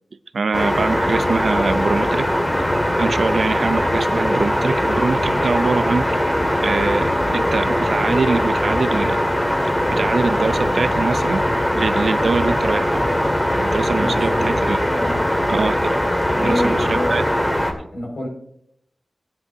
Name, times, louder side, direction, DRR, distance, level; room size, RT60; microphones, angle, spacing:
voice 1, 0.3-2.3 3.0-6.1 6.6-9.2 9.9-11.5 11.7-13.0 13.5-15.0 15.5-16.0 16.4-17.2, right 4 dB, 80° right, 13 dB, 0.5 m, -23 dB
sound 1, 0.5-17.7, equal, 20° left, 2.0 m, -20 dB
voice 2, 14.0-14.5 14.9-15.2 16.3-17.3 17.7-18.3, left 1 dB, 85° left, -1 dB, 5.3 m, -28 dB
16.5 x 9.9 x 2.8 m, 0.71 s
wide cardioid pair, 70°, 0 cm